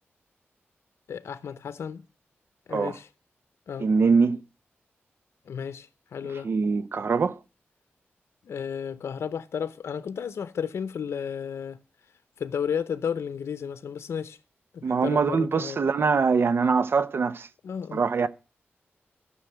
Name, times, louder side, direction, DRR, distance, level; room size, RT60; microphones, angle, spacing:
voice 1, 1.1-2.0 2.7-3.1 3.7-3.9 5.5-6.5 8.5-11.8 12.4-14.4 14.7-15.8 17.6-18.0, left 7 dB, 85° left, 0.7 m, -33 dB
voice 2, 3.8-4.4 6.4-7.4 14.8-17.5 17.9-18.3, right 5 dB, 60° right, 0.8 m, -23 dB
13.5 x 6.4 x 9.1 m
wide cardioid pair, 110°, 4 cm